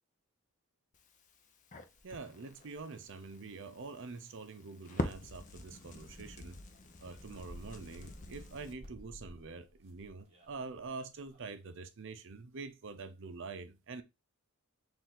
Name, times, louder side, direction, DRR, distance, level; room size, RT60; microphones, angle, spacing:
Crackle, 0.9-8.7, left 2 dB, 35° left, 0.5 m, -45 dB
sound 1, 1.9-3.3 3.8-3.9 4.3-4.5 5.0-5.2 6.5-6.6 6.7-11.5, equal, 30° right, 1.2 m, -55 dB
voice 1, 2.0-6.6 7.0-14.0, right 4 dB, 60° right, 0.6 m, -46 dB
4.5 x 2.6 x 3.8 m
head